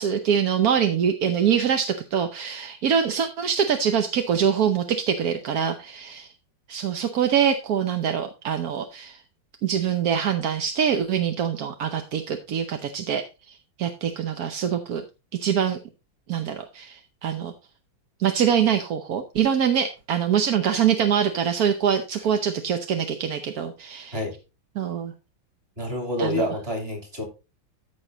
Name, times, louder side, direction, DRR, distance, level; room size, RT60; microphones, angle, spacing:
voice 1, 0.0-6.3 6.7-9.2 9.6-13.2 13.8-15.0 15.4-15.8 16.3-17.5 18.2-24.2 24.8-25.1 26.2-26.5, right 8 dB, 55° right, 7 dB, 1.1 m, -24 dB
voice 2, 25.8-27.2, left 1 dB, 25° right, 3 dB, 3.3 m, -28 dB
14.0 x 5.5 x 3.9 m, 0.29 s
omnidirectional pair, 2.4 m